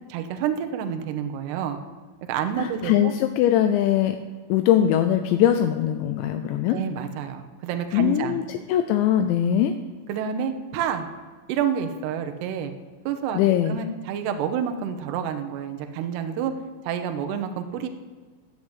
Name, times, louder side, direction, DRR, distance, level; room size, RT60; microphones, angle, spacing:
voice 1, 0.1-1.8 2.3-3.1 6.7-8.4 10.1-11.1 11.5-12.7 13.1-13.4 13.7-16.5 16.8-17.9, right 8 dB, 75° right, 6 dB, 2.6 m, -28 dB
voice 2, 2.6-4.2 4.5-6.8 7.9-9.7 13.4-13.8, left 10 dB, 85° left, 7 dB, 2.6 m, -21 dB
10.5 x 10.0 x 8.1 m, 1.5 s
omnidirectional pair, 5.9 m